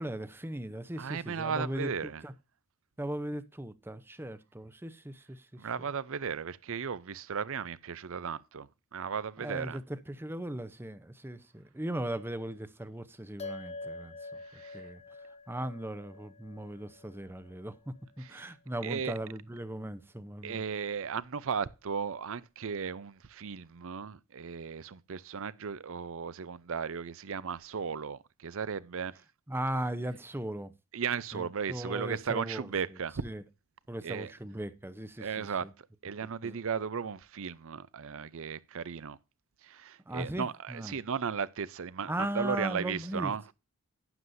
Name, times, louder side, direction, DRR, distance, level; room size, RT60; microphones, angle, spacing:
voice 1, 0.0-2.3 3.0-5.7 9.4-15.0 15.5-20.6 29.5-30.7 31.3-33.4 33.9-35.7 36.4-36.6 40.1-41.0 42.1-43.5, right 1 dB, 10° right, 0.7 m, -38 dB
voice 2, 1.0-2.2 5.6-9.8 14.5-14.8 18.2-18.5 18.8-19.1 20.4-29.1 30.9-33.2 34.0-34.3 35.2-35.7 36.0-39.2 39.6-43.4, right 6 dB, 65° right, 0.6 m, -36 dB
sound 1, 13.4-18.1, left 3 dB, 30° left, 1.0 m, -46 dB
12.0 x 9.4 x 2.7 m
head